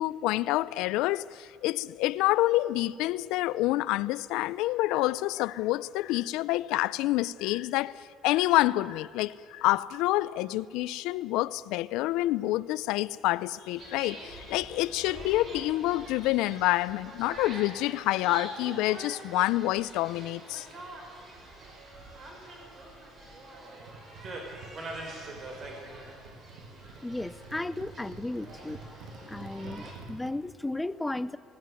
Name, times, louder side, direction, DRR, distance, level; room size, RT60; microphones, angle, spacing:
voice 1, 0.0-7.9 8.2-20.7, left 17 dB, 85° left, 0.5 m, -27 dB
sound 1, 13.7-30.0, right 2 dB, 35° right, 4.6 m, -45 dB
sound 2, 23.8-30.3, right 4 dB, 85° right, 1.9 m, -49 dB
voice 2, 27.0-28.8 29.3-31.4, left 2 dB, 10° left, 0.5 m, -34 dB
18.5 x 17.0 x 9.6 m
cardioid pair, 145°, 0 cm